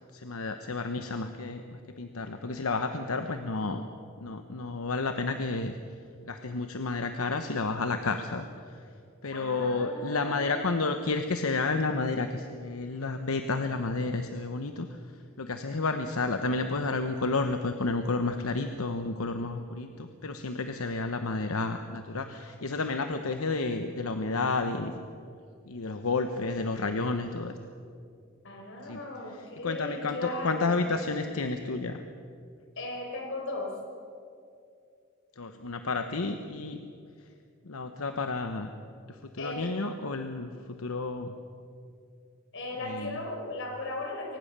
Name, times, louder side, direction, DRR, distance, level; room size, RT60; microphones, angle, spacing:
voice 1, 0.1-3.8 4.2-5.8 6.3-8.5 9.2-14.9 15.4-24.9 25.7-27.5 28.8-29.0 29.6-32.0 35.4-36.8 37.6-38.7 39.4-40.5 40.8-41.3 42.8-43.2, left 3 dB, 90° left, 7 dB, 1.0 m, -31 dB
voice 2, 9.3-10.8 28.4-30.8 32.8-33.8 39.4-39.8 42.5-44.4, left 2 dB, 65° left, 1 dB, 5.1 m, -37 dB
23.5 x 19.0 x 6.8 m, 2.4 s
head